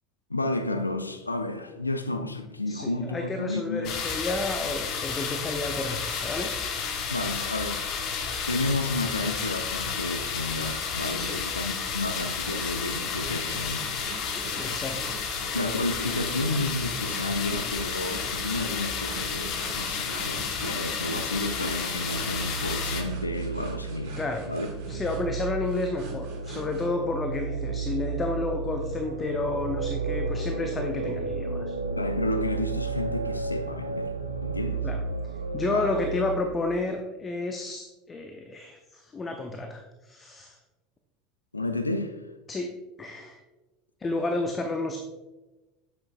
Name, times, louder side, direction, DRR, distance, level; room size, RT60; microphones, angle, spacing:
voice 1, 0.3-3.9 7.1-7.9 8.5-14.0 15.5-24.2 24.5-24.7 32.0-34.1 34.4-34.9 35.7-35.9 41.5-42.2, left 2 dB, 90° left, 0.5 m, -31 dB
voice 2, 2.7-6.5 11.2-11.4 14.3-15.2 24.2-24.5 24.9-31.7 34.8-35.0 35.5-40.6 42.5-42.7 43.0-43.4 44.0-45.0, left 2 dB, 25° left, 0.6 m, -31 dB
sound 1, 3.8-23.0, left 6 dB, 45° left, 1.0 m, -31 dB
sound 2, 11.3-26.9, right 4 dB, 55° right, 1.3 m, -44 dB
sound 3, 20.9-36.5, right 4 dB, 85° right, 0.5 m, -33 dB
7.9 x 6.7 x 2.4 m
figure-of-eight pair, 75°, 0 cm